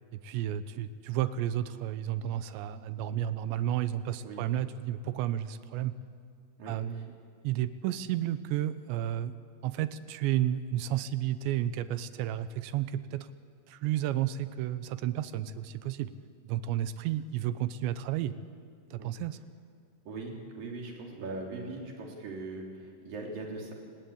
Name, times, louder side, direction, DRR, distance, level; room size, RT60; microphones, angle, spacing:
voice 1, 0.1-5.9 6.7-7.1 7.4-9.3 9.6-13.3 13.7-16.1 16.4-18.3 18.9-19.4, right 12 dB, 85° right, 13 dB, 3.0 m, -32 dB
voice 2, 6.6-7.0 19.0-19.1 20.1-23.7, right 3 dB, 50° right, 0 dB, 4.8 m, -40 dB
29.0 x 19.0 x 8.7 m, 2.3 s
omnidirectional pair, 5.2 m